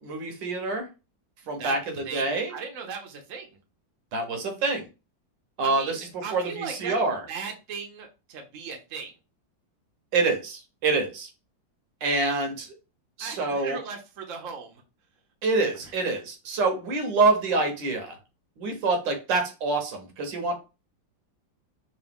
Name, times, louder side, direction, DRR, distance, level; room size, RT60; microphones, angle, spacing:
voice 1, 0.0-0.9 1.5-1.8 2.1-2.6 4.1-4.8 5.6-7.2 10.1-11.3 12.0-12.7 13.2-13.8 15.4-18.2 18.6-20.6, right 3 dB, 70° right, 4 dB, 1.5 m, -26 dB
voice 2, 1.6-3.5 5.6-9.1 13.2-14.8 15.8-15.9, right 5 dB, 55° right, 2 dB, 1.0 m, -38 dB
3.8 x 2.7 x 3.5 m, 0.29 s
omnidirectional pair, 2.1 m